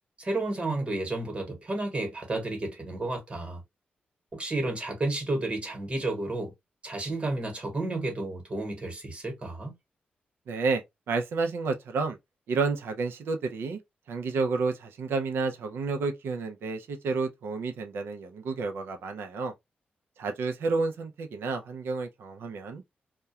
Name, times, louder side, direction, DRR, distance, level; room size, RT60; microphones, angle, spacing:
voice 1, 0.2-3.6 4.3-6.5 6.8-9.7, right 2 dB, 35° right, 1.1 m, -31 dB
voice 2, 10.5-10.8 11.1-12.2 12.5-13.8 14.1-19.5 20.2-22.8, right 4 dB, 85° right, 0.5 m, -30 dB
2.3 x 2.2 x 2.7 m
cardioid pair, 95°, 4 cm